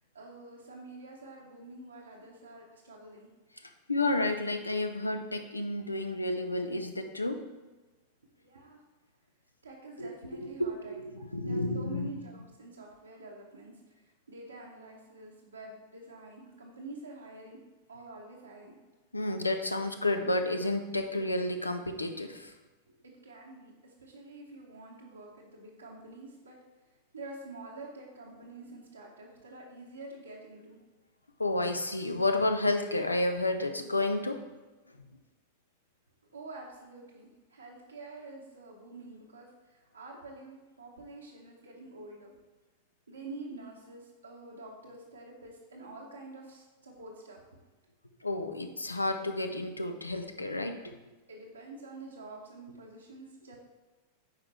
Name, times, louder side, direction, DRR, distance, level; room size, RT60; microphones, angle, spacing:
voice 1, 0.1-3.3 8.4-8.8 9.6-13.8 14.3-17.6 17.9-18.8 23.0-26.6 27.1-30.8 36.3-42.4 43.1-47.4 51.3-53.6, right 2 dB, 80° right, -4 dB, 1.1 m, -47 dB
voice 2, 3.9-7.4 10.0-10.1 10.4-12.1 19.1-22.5 31.4-34.4 48.2-51.0, left 2 dB, 80° left, 7 dB, 0.6 m, -31 dB
8.4 x 4.9 x 3.3 m, 1.2 s
figure-of-eight pair, 90°, 0 cm